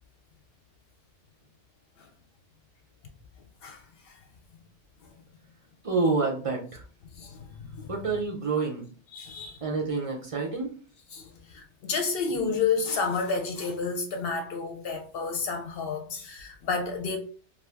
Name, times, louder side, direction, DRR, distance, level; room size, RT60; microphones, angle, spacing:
voice 1, 3.6-4.2 7.1-8.0 9.1-9.6 11.1-17.2, left 5 dB, 65° left, 0.7 m, -31 dB
voice 2, 5.8-6.8 7.9-8.8 9.6-10.7, right 4 dB, 50° right, 0.4 m, -28 dB
2.6 x 2.4 x 3.3 m
omnidirectional pair, 1.2 m